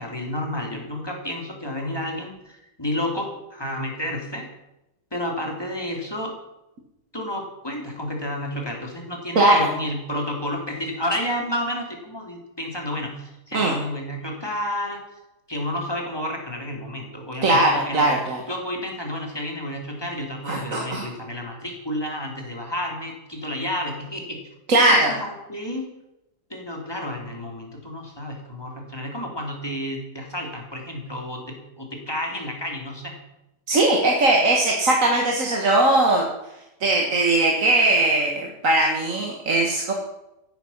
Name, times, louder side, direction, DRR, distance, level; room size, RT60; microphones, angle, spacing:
voice 1, 0.0-4.5 5.1-6.3 7.1-15.0 15.5-18.1 18.5-24.4 24.9-25.9 26.5-33.2, left 1 dB, 15° left, 1 dB, 3.1 m, -31 dB
voice 2, 9.4-9.7 13.5-13.8 17.4-18.4 20.5-21.1 24.7-25.1 33.7-36.2 36.8-39.9, right 2 dB, 50° right, 0 dB, 2.1 m, -19 dB
15.0 x 11.5 x 5.7 m, 0.90 s
omnidirectional pair, 1.9 m